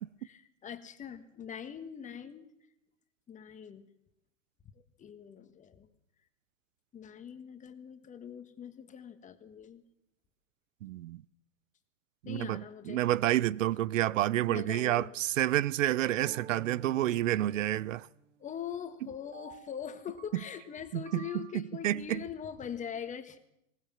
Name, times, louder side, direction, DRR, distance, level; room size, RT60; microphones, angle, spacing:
voice 1, 0.2-2.4 3.3-3.9 5.0-5.9 6.9-9.8 12.2-13.0 14.5-15.1 18.4-23.4, left 8 dB, 20° left, 1.6 m, -42 dB
voice 2, 10.8-11.2 12.3-18.1 20.9-21.0 21.3-22.2, right 14 dB, 80° right, 0.7 m, -29 dB
sound 1, 16.2-18.5 19.3-21.5, right 8 dB, 25° right, 1.7 m, -52 dB
20.5 x 19.0 x 7.3 m
supercardioid pair, 135°, 38 cm